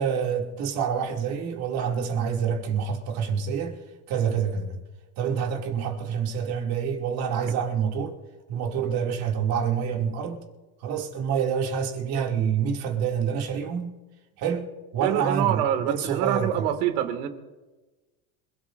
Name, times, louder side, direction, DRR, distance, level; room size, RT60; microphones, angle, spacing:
voice 1, 0.0-3.8 4.1-4.8 5.2-8.2 8.5-10.4 10.8-14.0 14.4-16.7, right 7 dB, 50° right, 2.7 m, -27 dB
voice 2, 15.0-17.3, right 11 dB, 75° right, 2.3 m, -25 dB
27.0 x 17.0 x 2.6 m
supercardioid pair, 145°, 45 cm